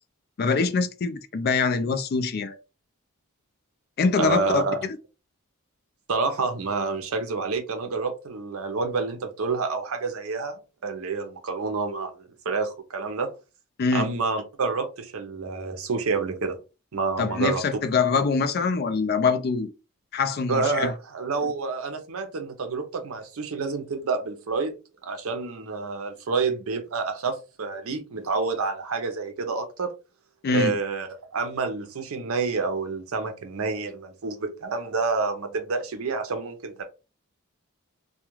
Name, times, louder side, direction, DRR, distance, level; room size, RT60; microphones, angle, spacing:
voice 1, 0.4-2.6 4.0-4.6 13.8-14.1 17.2-19.7 20.1-20.9 30.4-30.8, left 4 dB, 45° left, 0.3 m, -24 dB
voice 2, 4.2-4.8 6.1-13.3 13.9-16.6 16.9-17.6 20.5-24.8 25.0-29.9 30.5-31.1 31.3-36.9, right 4 dB, 70° right, 0.6 m, -28 dB
2.3 x 2.1 x 3.0 m
head